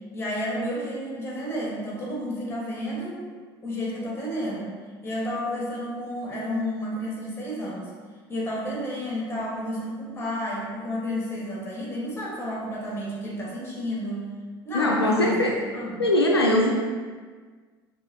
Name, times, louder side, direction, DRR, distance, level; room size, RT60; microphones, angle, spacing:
voice 1, 0.1-3.2 3.6-4.7 5.0-7.9 8.3-14.3 14.6-16.0, equal, 20° left, -4 dB, 1.4 m, -31 dB
voice 2, 14.7-15.6 16.0-16.8, left 1 dB, 85° left, 0 dB, 0.4 m, -21 dB
5.5 x 2.6 x 2.8 m, 1.5 s
figure-of-eight pair, 65°, 13 cm